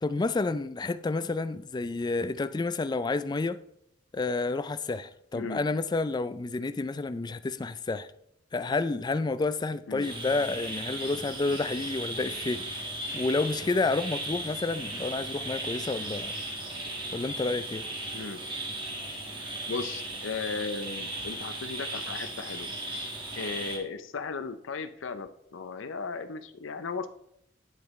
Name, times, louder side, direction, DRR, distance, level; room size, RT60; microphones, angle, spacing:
voice 1, 0.0-3.6 4.1-8.1 8.5-12.6 13.1-16.3 17.1-17.8, left 3 dB, 20° left, 0.3 m, -30 dB
sound 1, 10.0-23.8, right 1 dB, 25° right, 1.5 m, -36 dB
voice 2, 19.7-22.7 23.4-27.1, left 4 dB, 85° left, 0.5 m, -36 dB
9.2 x 7.8 x 3.1 m
head